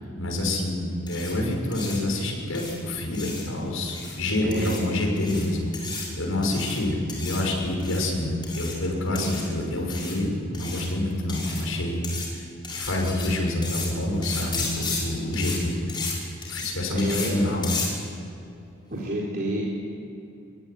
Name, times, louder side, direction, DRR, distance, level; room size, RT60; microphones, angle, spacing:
voice 1, 0.1-5.7 5.9-12.0 12.3-12.4 12.7-15.9 16.5-17.7, left 1 dB, 80° left, 0 dB, 6.7 m, -27 dB
sound 1, 1.1-1.3 1.7-2.0 2.6-2.7 3.1-3.4 3.9-4.2 4.5-4.8 5.2-5.5 5.7-6.1 6.4-6.8 7.1-7.4 7.8-8.1 8.4-8.8 9.2-9.4 9.9-10.2 10.5-10.9 11.3-11.7 12.0-12.3 12.6-13.3 13.6-13.9 14.2-15.0 15.3-15.6 15.9-16.1 16.4-16.7 17.0-17.3 17.6-17.9, left 4 dB, 20° left, 6.2 m, -33 dB
voice 2, 4.4-4.8 9.1-9.3 16.9-17.5 18.9-19.6, right 1 dB, 45° right, -5 dB, 4.1 m, -29 dB
24.0 x 23.0 x 9.9 m, 2.8 s
head